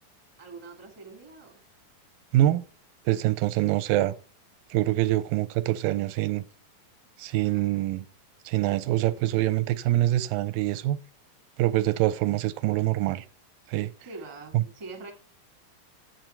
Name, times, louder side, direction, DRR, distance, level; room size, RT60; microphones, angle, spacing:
voice 1, 0.4-1.6 7.4-7.9 14.0-15.1, right 3 dB, 15° right, 1.1 m, -44 dB
voice 2, 2.3-2.6 3.1-4.1 4.7-6.4 7.2-8.1 8.5-11.0 11.6-13.3 13.7-13.9 14.5-14.6, right 15 dB, 90° right, 2.3 m, -25 dB
9.1 x 8.1 x 4.4 m
omnidirectional pair, 4.0 m